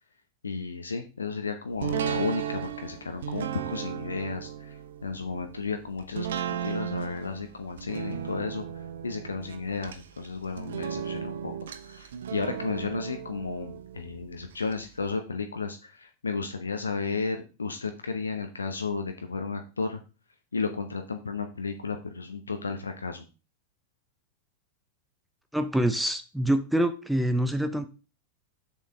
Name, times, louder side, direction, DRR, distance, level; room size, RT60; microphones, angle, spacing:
voice 1, 0.4-8.6 9.0-11.5 11.8-20.0 20.5-23.3, left 4 dB, 75° left, 6 dB, 0.8 m, -33 dB
sound 1, 1.8-14.7 15.1-15.2, right 9 dB, 60° right, 0.9 m, -36 dB
voice 2, 25.5-27.9, right 1 dB, ahead, 9 dB, 0.7 m, -25 dB
7.4 x 7.0 x 3.8 m, 0.32 s
figure-of-eight pair, 90°, 0 cm